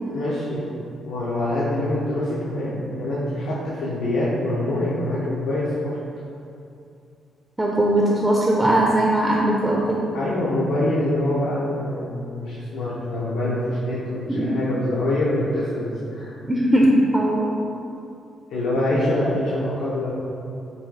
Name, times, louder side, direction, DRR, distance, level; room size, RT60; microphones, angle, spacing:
voice 1, 0.0-0.7 1.0-6.0 10.1-16.4 18.5-20.1, left 1 dB, 75° left, -8 dB, 0.5 m, -25 dB
voice 2, 7.6-10.0 14.3-14.6 16.4-17.5, right 1 dB, 15° right, -4 dB, 0.4 m, -19 dB
3.9 x 2.3 x 2.7 m, 2.6 s
supercardioid pair, 60°, 0 cm